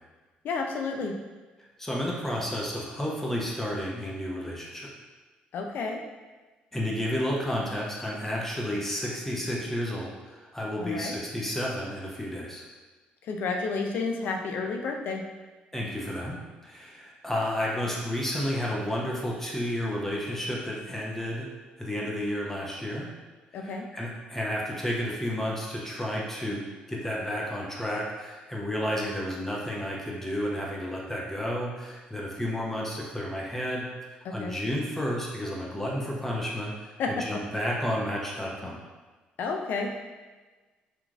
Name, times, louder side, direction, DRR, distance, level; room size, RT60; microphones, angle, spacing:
voice 1, 0.4-1.2 5.5-6.0 10.8-11.2 13.2-15.2 23.5-23.9 34.2-34.6 37.0-37.4 39.4-40.2, left 4 dB, 65° left, 3 dB, 0.4 m, -31 dB
voice 2, 1.8-4.9 6.7-12.6 15.7-16.4 16.6-21.5 21.8-23.1 23.6-38.8, equal, 10° left, -3 dB, 0.7 m, -31 dB
2.9 x 2.5 x 2.4 m, 1.3 s
supercardioid pair, 70°, 3 cm